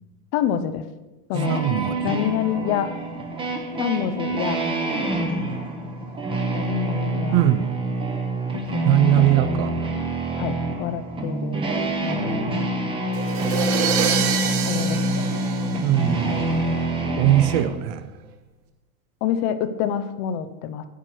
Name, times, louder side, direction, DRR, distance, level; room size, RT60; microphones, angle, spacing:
voice 1, 0.3-0.8 1.3-1.6 2.0-2.9 3.8-4.6 6.5-7.4 8.7-9.3 10.4-11.6 12.0-12.6 14.7-15.4 16.3-16.9 19.2-20.9, left 9 dB, 30° left, 9 dB, 0.4 m, -27 dB
sound 1, 1.3-17.6, right 1 dB, 10° right, 0.9 m, -26 dB
voice 2, 1.5-2.0 7.3-7.7 8.8-9.8 15.8-16.4 17.2-18.0, right 13 dB, 40° right, 13 dB, 0.6 m, -20 dB
sound 2, 13.1-16.4, right 8 dB, 85° right, 1.4 m, -26 dB
9.1 x 8.2 x 5.9 m, 1.1 s
supercardioid pair, 160°, 43 cm